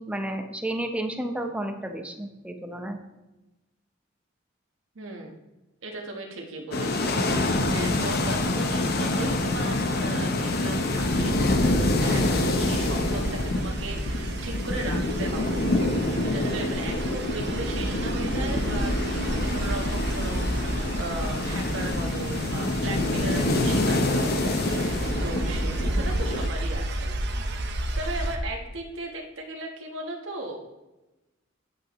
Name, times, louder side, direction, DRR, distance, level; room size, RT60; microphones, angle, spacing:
voice 1, 0.0-3.0, right 1 dB, 5° right, 4 dB, 0.8 m, -32 dB
voice 2, 4.9-5.4 5.8-12.2 12.5-15.7 16.2-27.1 27.9-30.6, right 2 dB, 80° right, 0 dB, 1.3 m, -37 dB
sound 1, 6.7-26.5, left 2 dB, 55° left, 0.9 m, -26 dB
sound 2, 10.6-28.4, right 1 dB, 60° right, 0.8 m, -32 dB
9.3 x 8.2 x 3.1 m, 1.0 s
head